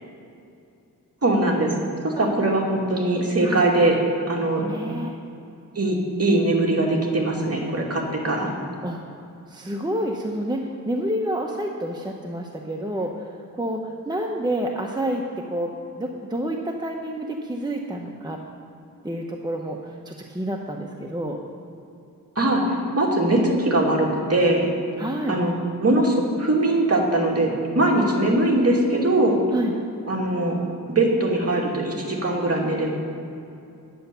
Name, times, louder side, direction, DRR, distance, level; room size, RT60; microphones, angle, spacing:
voice 1, 1.2-1.7 2.0-4.0 4.3-4.6 5.8-8.5 22.4-24.7 25.3-25.5 25.8-29.4 30.1-30.6 30.9-32.9, right 2 dB, 40° right, -2 dB, 2.4 m, -21 dB
voice 2, 4.6-5.2 8.8-9.0 9.5-18.4 19.0-21.4 25.0-25.4 28.0-28.1 29.5-29.7, right 1 dB, 10° right, 1 dB, 0.9 m, -29 dB
10.0 x 9.5 x 6.9 m, 2.7 s
wide cardioid pair, 85°, 36 cm